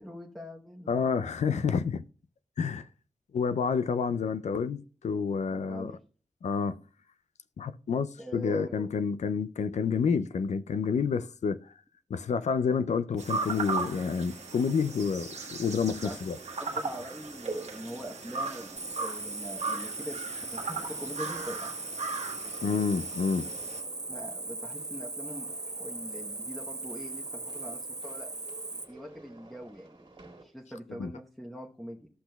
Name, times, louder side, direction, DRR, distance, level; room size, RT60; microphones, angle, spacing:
voice 1, 0.0-1.0 5.5-6.0 8.2-8.8 16.0-16.1 16.6-20.2 20.5-21.8 24.1-25.5 25.8-28.3 28.7-30.1 30.4-32.1, equal, ahead, 0.9 m, -43 dB
voice 2, 0.9-2.0 2.6-2.9 3.3-5.9 6.4-6.8 7.6-11.7 12.1-16.4 22.6-23.5 31.0-31.1, left 6 dB, 75° left, 0.4 m, -29 dB
sound 1, 13.2-23.8, right 4 dB, 70° right, 1.3 m, -37 dB
Cricket, 18.8-28.8, right 2 dB, 30° right, 0.8 m, -39 dB
sound 2, 20.5-30.4, right 2 dB, 50° right, 2.0 m, -52 dB
13.5 x 6.0 x 2.2 m
wide cardioid pair, 85°, 12 cm